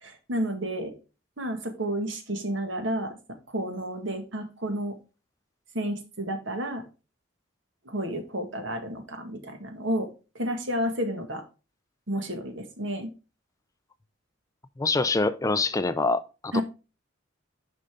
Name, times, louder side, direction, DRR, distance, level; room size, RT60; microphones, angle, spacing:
voice 1, 0.0-0.9 1.4-3.2 3.5-5.0 5.7-6.8 7.9-10.1 10.4-11.4 12.1-13.1 16.5-16.6, equal, 65° right, 1.8 m, -31 dB
voice 2, 14.8-16.6, left 3 dB, 15° left, 0.3 m, -25 dB
10.0 x 5.4 x 3.7 m
head